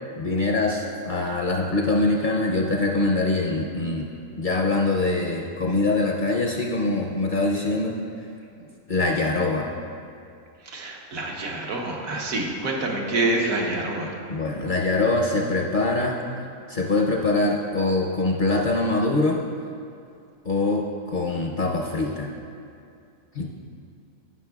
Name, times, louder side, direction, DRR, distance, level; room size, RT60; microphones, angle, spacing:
voice 1, 0.2-4.1 4.3-7.9 8.9-9.7 14.3-16.2 16.7-19.4 20.4-22.3 23.3-23.5, left 2 dB, 55° left, 0 dB, 0.6 m, -23 dB
voice 2, 10.6-14.1, right 2 dB, 90° right, -1 dB, 1.5 m, -27 dB
15.5 x 6.0 x 2.3 m, 2.4 s
omnidirectional pair, 1.4 m